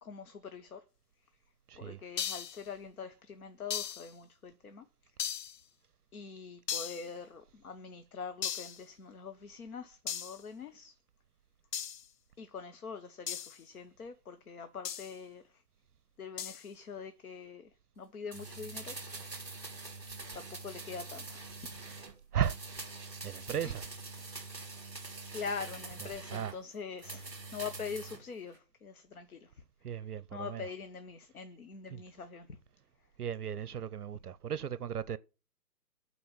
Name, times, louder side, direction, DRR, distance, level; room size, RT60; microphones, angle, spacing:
voice 1, 0.0-0.8 1.8-4.8 6.1-11.0 12.4-15.6 16.2-17.7 18.0-19.0 19.5-19.7 20.3-21.9 23.6-23.7 24.2-24.3 25.3-29.6 30.3-32.6, left 5 dB, 60° left, 1.0 m, -44 dB
voice 2, 1.7-2.0 21.8-22.0 22.3-22.5 23.2-23.9 26.0-26.6 27.1-27.3 29.8-30.7 31.9-32.0 33.2-35.2, right 9 dB, 65° right, 0.6 m, -36 dB
sound 1, 2.2-2.6 3.7-4.1 5.2-5.6 6.7-7.1 8.4-8.8 10.1-10.4 11.7-12.1 13.3-13.6 14.8-15.1 16.4-16.6, left 9 dB, 75° left, 0.7 m, -37 dB
sound 2, 18.3-22.1 22.4-26.6 27.0-28.2 28.5-28.6, right 3 dB, 5° left, 1.2 m, -44 dB
9.1 x 4.2 x 7.2 m
hypercardioid pair, 160°, 49 cm